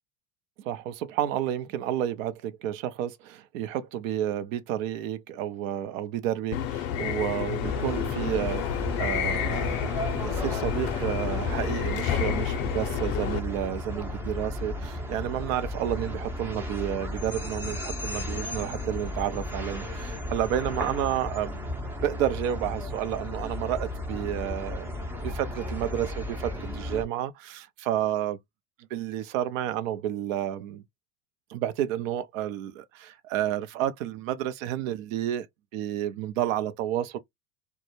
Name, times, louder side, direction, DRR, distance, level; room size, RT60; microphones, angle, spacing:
voice 1, 0.6-9.9 10.2-21.6 22.0-24.9 25.2-28.4 28.9-30.8 31.5-35.5 35.7-37.2, right 11 dB, 60° right, 0.5 m, -31 dB
sound 1, 6.5-13.4, left 10 dB, 50° left, 0.6 m, -30 dB
sound 2, 7.6-27.0, left 1 dB, 5° right, 0.4 m, -34 dB
2.2 x 2.0 x 2.9 m
hypercardioid pair, 80°, 44 cm